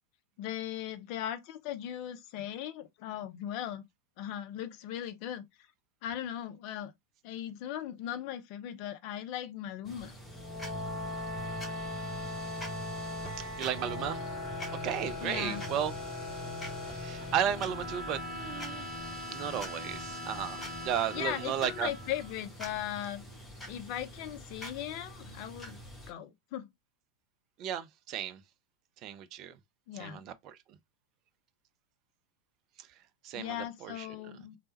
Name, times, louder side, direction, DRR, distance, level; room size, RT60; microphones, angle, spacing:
voice 1, 0.4-3.8 4.2-5.4 6.0-6.9 7.2-10.2 15.2-15.6 21.1-23.2 23.7-25.8 26.1-26.7 29.9-30.2 33.3-34.6, left 11 dB, 45° left, 0.4 m, -38 dB
sound 1, 9.8-26.1, equal, 10° left, 1.0 m, -47 dB
sound 2, 10.2-22.6, left 1 dB, 10° right, 1.9 m, -39 dB
voice 2, 13.4-14.3 14.7-15.9 16.8-21.9 27.6-28.4 29.0-29.6 29.9-30.8 32.8-34.1, right 9 dB, 35° right, 0.4 m, -35 dB
3.2 x 2.0 x 2.8 m
figure-of-eight pair, 90°, 0 cm